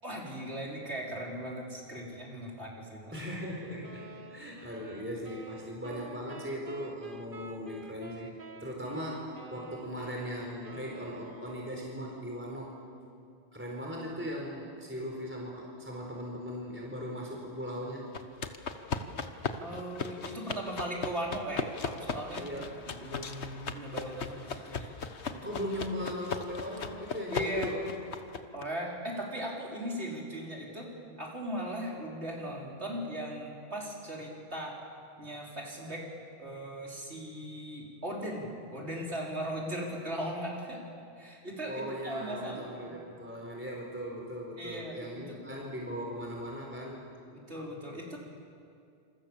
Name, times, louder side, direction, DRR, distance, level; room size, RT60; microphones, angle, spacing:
voice 1, 0.0-3.0 19.6-24.9 25.3-25.5 27.3-27.7 28.5-30.9 31.2-34.8 35.2-36.1 36.4-40.8 41.2-42.9 44.6-45.4 47.3-48.2, equal, 80° right, -2 dB, 5.2 m, -38 dB
voice 2, 3.1-12.7 13.5-18.1 22.4-22.7 25.4-27.9 41.6-47.0, equal, 10° right, -2 dB, 4.3 m, -39 dB
sound 1, 3.8-12.2, right 3 dB, 50° right, 1.6 m, -50 dB
sound 2, 18.1-28.6, left 5 dB, 80° left, 1.5 m, -38 dB
27.5 x 27.0 x 7.4 m, 2.4 s
omnidirectional pair, 1.1 m